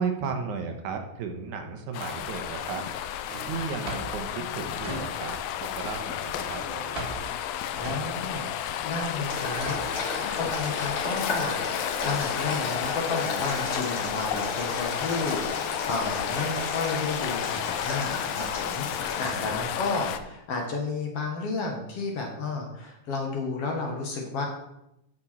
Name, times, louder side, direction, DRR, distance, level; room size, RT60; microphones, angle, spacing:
voice 1, 0.0-2.9 3.4-7.0 16.3-16.4 19.2-19.6, right 5 dB, 75° right, 4 dB, 2.4 m, -34 dB
sound 1, 1.9-20.2, left 10 dB, 85° left, 1.4 m, -32 dB
Drawer open or close, 2.5-5.6 5.8-10.1, right 1 dB, 35° right, 1.0 m, -40 dB
voice 2, 7.7-9.8 10.4-24.5, left 3 dB, 60° left, 1 dB, 2.0 m, -32 dB
Boiling, 9.3-19.6, left 2 dB, 45° left, 3.8 m, -35 dB
12.5 x 5.3 x 4.3 m, 0.86 s
omnidirectional pair, 3.5 m